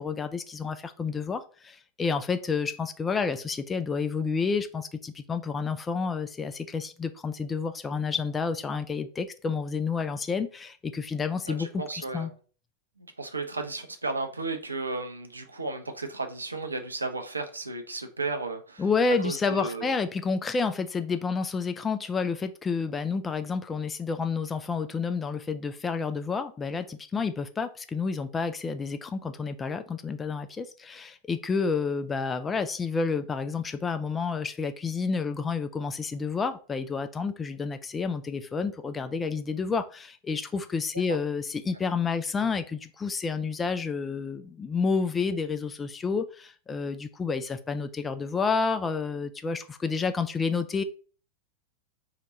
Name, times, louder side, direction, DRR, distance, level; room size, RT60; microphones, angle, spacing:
voice 1, 0.0-11.7 12.0-12.3 18.8-50.8, left 5 dB, 15° left, 0.3 m, -30 dB
voice 2, 11.4-12.3 13.0-18.8 19.2-19.9 41.1-41.2, right 3 dB, 80° right, 0.5 m, -34 dB
2.8 x 2.2 x 4.0 m
figure-of-eight pair, 90°, 0 cm